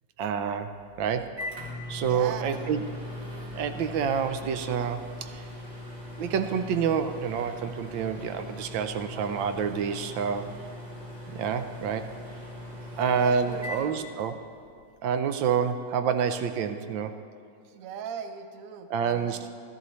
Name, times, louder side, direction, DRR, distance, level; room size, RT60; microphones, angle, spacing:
voice 1, 0.2-1.4 1.9-2.8 3.4-5.5 6.2-10.5 11.3-12.1 13.0-14.4 15.0-17.2 18.9-19.5, right 7 dB, 85° right, 9 dB, 1.4 m, -28 dB
Microwave oven, 0.7-14.7, left 1 dB, 35° right, 2.5 m, -40 dB
voice 2, 2.0-2.6 13.1-13.9 17.7-19.5, right 7 dB, 65° right, 9 dB, 0.9 m, -39 dB
14.0 x 13.5 x 3.1 m, 2.3 s
omnidirectional pair, 2.1 m